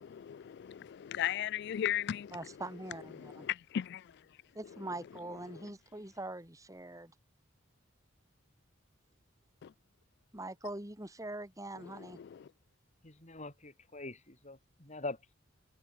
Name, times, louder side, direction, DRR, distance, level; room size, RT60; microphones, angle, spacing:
voice 1, 0.0-2.4 3.1-4.1 9.6-9.7 12.2-12.5, left 10 dB, 55° left, 0.3 m, -36 dB
voice 2, 2.3-3.5 4.5-7.1 10.3-12.2, right 2 dB, 15° right, 3.5 m, -43 dB
voice 3, 13.0-15.3, left 2 dB, 35° left, 4.6 m, -44 dB
head